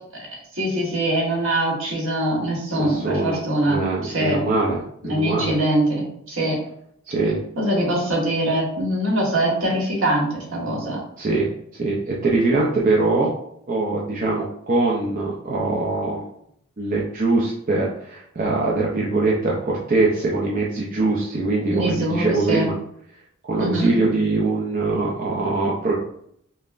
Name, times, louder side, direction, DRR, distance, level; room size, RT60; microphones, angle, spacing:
voice 1, 0.5-4.4 5.1-6.6 7.6-11.0 21.7-22.7 23.6-24.0, right 1 dB, 70° right, -3 dB, 1.2 m, -23 dB
voice 2, 2.8-5.5 7.1-7.4 11.2-11.5 11.8-13.3 13.7-16.3 16.8-22.8 23.4-25.9, right 2 dB, 40° right, -4 dB, 0.5 m, -22 dB
5.3 x 2.0 x 2.4 m, 0.69 s
head